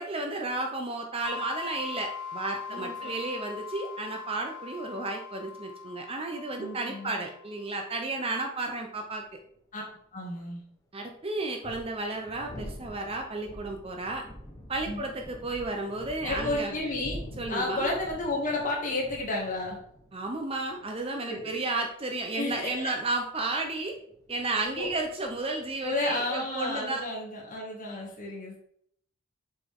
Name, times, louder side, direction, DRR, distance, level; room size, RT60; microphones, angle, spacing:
voice 1, 0.0-9.2 10.9-14.2 14.7-16.7 17.4-17.9 20.1-23.9 24.3-27.0, right 2 dB, 25° right, 3 dB, 0.7 m, -33 dB
sound 1, 1.3-7.8, left 6 dB, 85° left, 0.4 m, -41 dB
voice 2, 2.7-3.2 6.6-7.2 9.7-9.8 10.1-10.6 14.8-15.0 16.2-17.2 17.5-19.8 21.3-21.6 22.3-22.9 24.8-24.9 25.8-28.6, left 2 dB, 35° left, -2 dB, 2.3 m, -32 dB
sound 2, 9.2-9.3 11.4-27.0, equal, 15° left, 1.1 m, -46 dB
7.0 x 5.7 x 3.7 m, 0.66 s
head